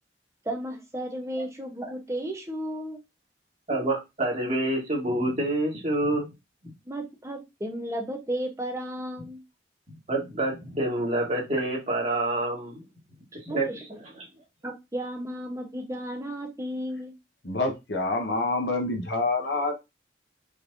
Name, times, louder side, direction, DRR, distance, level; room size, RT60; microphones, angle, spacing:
voice 1, 0.4-3.0 6.9-9.4 13.5-13.8 14.6-17.1, equal, 15° right, 2 dB, 0.9 m, -34 dB
voice 2, 3.7-6.3 6.6-6.7 10.1-12.8 13.4-13.7 14.1-14.3, right 1 dB, 35° right, -3 dB, 1.9 m, -27 dB
voice 3, 17.4-19.7, left 2 dB, 65° left, 3 dB, 1.2 m, -27 dB
4.6 x 3.3 x 2.6 m, 0.23 s
head